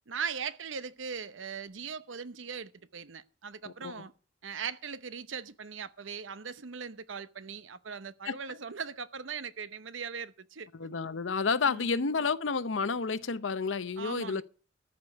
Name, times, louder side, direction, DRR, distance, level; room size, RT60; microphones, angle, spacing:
voice 1, 0.1-4.1 4.4-10.7 11.7-11.9 14.0-14.4, right 6 dB, 90° right, 0.8 m, -39 dB
voice 2, 3.6-4.0 8.3-8.4 10.7-14.4, left 4 dB, 85° left, 0.7 m, -30 dB
14.0 x 5.1 x 9.3 m
head